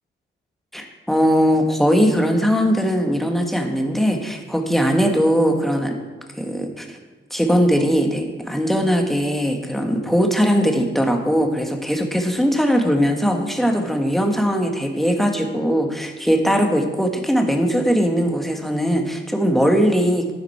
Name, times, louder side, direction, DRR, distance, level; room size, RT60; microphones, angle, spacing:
voice 1, 0.7-6.0 6.4-7.0 7.3-20.3, equal, ahead, 2 dB, 1.8 m, -20 dB
11.0 x 10.5 x 4.4 m, 1.3 s
cardioid pair, 85°, 19 cm